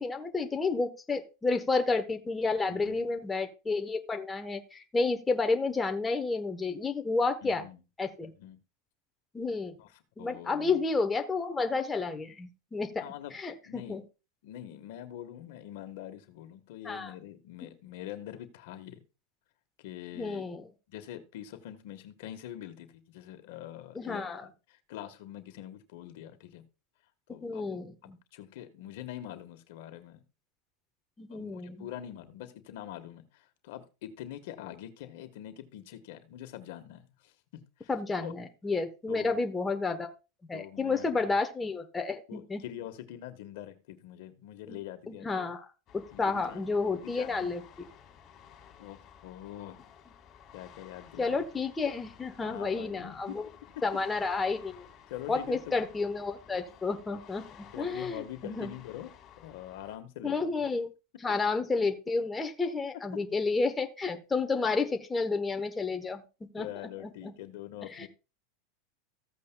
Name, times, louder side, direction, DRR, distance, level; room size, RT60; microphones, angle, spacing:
voice 1, 0.0-7.6 8.0-8.3 9.3-9.8 10.2-13.0 13.3-14.0 16.8-17.1 20.1-20.7 23.9-24.5 27.4-28.2 31.2-31.9 37.9-40.1 40.5-42.6 44.7-44.8 45.1-45.6 45.9-47.6 51.2-53.5 53.8-54.8 55.3-58.7 60.2-60.9 61.2-66.2 66.5-66.7 67.0-67.3 67.8-68.1, left 4 dB, 10° left, 5 dB, 1.0 m, -31 dB
voice 2, 2.7-3.1 7.4-7.8 8.4-8.6 9.8-9.9 10.2-10.8 13.0-13.4 13.6-14.0 14.4-19.0 19.8-20.4 20.9-26.6 27.3-27.8 28.0-30.2 31.3-37.9 38.2-38.3 39.1-39.4 40.5-41.3 42.3-45.5 46.1-47.5 48.8-49.8 50.5-51.3 52.4-53.4 55.1-55.9 57.1-57.2 57.7-59.1 59.4-60.5 63.1-63.2 66.6-68.1, left 12 dB, 65° left, 9 dB, 1.3 m, -44 dB
sound 1, 45.9-60.0, left 8 dB, 35° left, 2.9 m, -54 dB
14.5 x 8.4 x 2.3 m, 0.30 s
supercardioid pair, 135°, 0 cm